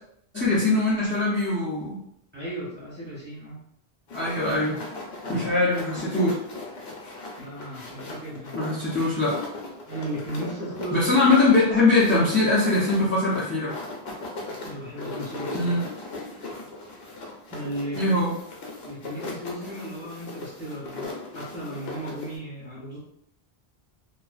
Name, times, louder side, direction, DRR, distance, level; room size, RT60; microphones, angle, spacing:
voice 1, 0.3-2.0 4.1-4.9 5.3-6.4 8.5-9.3 10.9-13.7 15.5-15.8 17.9-18.3, left 2 dB, 20° left, -9 dB, 0.4 m, -22 dB
voice 2, 2.3-3.6 5.2-5.7 7.4-8.6 9.9-11.3 14.6-15.8 17.5-18.2 18.8-23.0, right 1 dB, 10° right, -8 dB, 0.9 m, -35 dB
sound 1, 4.1-22.4, left 2 dB, 75° left, 0.8 m, -38 dB
2.5 x 2.1 x 2.4 m, 0.72 s
omnidirectional pair, 1.1 m